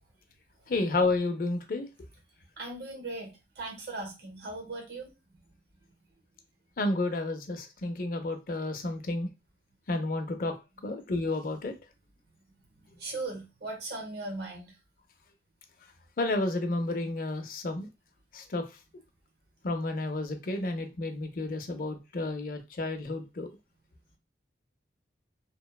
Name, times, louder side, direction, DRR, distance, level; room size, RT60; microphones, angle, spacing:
voice 1, 0.7-1.9 6.8-9.3 9.9-10.5 10.8-11.7 16.2-17.9 18.3-18.6 19.6-23.5, left 2 dB, 50° left, 0.4 m, -31 dB
voice 2, 2.6-5.1 12.8-14.7, right 2 dB, 65° right, 0.8 m, -38 dB
2.9 x 2.0 x 2.2 m
head